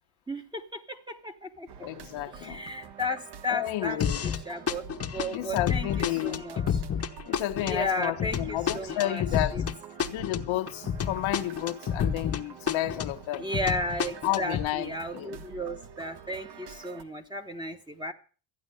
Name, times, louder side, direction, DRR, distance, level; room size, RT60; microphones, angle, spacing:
voice 1, 0.3-1.7 2.3-4.8 5.1-6.8 7.5-9.2 9.5-9.6 13.4-18.1, left 1 dB, 10° right, 1.0 m, -34 dB
sound 1, 1.7-17.0, right 7 dB, 55° right, 1.4 m, -46 dB
voice 2, 1.8-2.6 3.5-4.2 5.3-6.4 7.3-9.6 10.1-13.5 14.2-15.4, left 15 dB, 80° left, 1.1 m, -31 dB
sound 2, 4.0-4.4 4.7-12.4 12.7-14.7, left 7 dB, 30° left, 0.9 m, -30 dB
14.0 x 9.6 x 6.7 m
cardioid pair, 160°, 46 cm